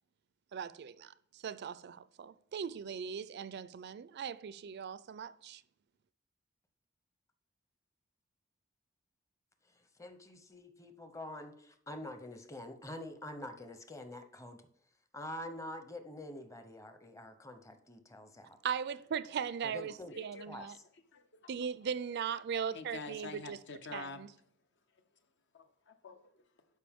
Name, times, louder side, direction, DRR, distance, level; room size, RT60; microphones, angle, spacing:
voice 1, 0.5-5.6 18.6-20.8 21.5-23.6 23.9-24.3, right 7 dB, 55° right, 0.4 m, -39 dB
voice 2, 9.7-14.6 15.1-18.6 19.6-20.2 20.5-20.7, left 1 dB, 15° left, 0.8 m, -46 dB
voice 3, 20.1-20.7 21.1-21.5 22.7-24.2 24.9-25.0 25.5-26.7, left 3 dB, 60° left, 0.8 m, -47 dB
12.0 x 5.1 x 3.6 m
head